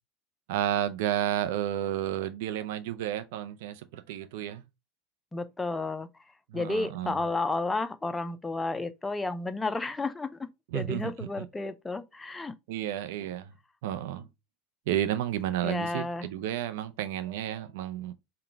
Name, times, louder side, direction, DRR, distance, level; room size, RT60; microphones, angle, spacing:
voice 1, 0.5-4.6 6.5-7.2 10.7-11.5 12.7-13.5 13.8-14.3 14.9-18.1, right 11 dB, 65° right, 0.5 m, -32 dB
voice 2, 5.3-6.1 6.5-12.6 15.6-16.3, left 3 dB, 15° left, 0.5 m, -32 dB
3.8 x 2.3 x 4.5 m
hypercardioid pair, 80°, 0 cm